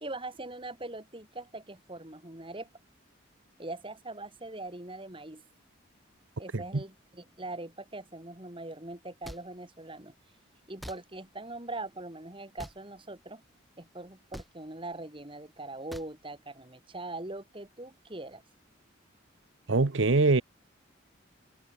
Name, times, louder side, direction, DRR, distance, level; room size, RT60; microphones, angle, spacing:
voice 1, 0.0-2.7 3.6-5.4 6.4-10.1 10.7-13.4 13.8-18.4, right 2 dB, 25° right, 2.9 m, -41 dB
sound 1, 9.2-9.4 10.8-11.0 12.6-12.8 14.3-14.5 15.9-16.1, equal, ahead, 1.4 m, -43 dB
voice 2, 19.7-20.4, right 3 dB, 65° right, 0.9 m, -24 dB
head